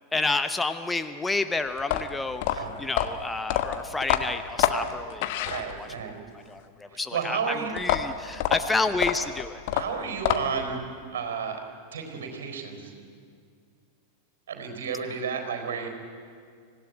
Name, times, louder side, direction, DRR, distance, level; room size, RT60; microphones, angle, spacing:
voice 1, 0.1-5.9 6.3-9.6, left 3 dB, 10° left, 9 dB, 0.8 m, -30 dB
sound 1, 1.8-6.1 7.8-10.7, left 12 dB, 50° left, 1.2 m, -27 dB
voice 2, 2.5-2.9 5.4-6.2 7.1-7.8 9.7-11.6 11.9-12.9 14.5-15.9, right 6 dB, 60° right, 5 dB, 4.2 m, -32 dB
25.5 x 16.5 x 9.4 m, 2.2 s
figure-of-eight pair, 90°, 0 cm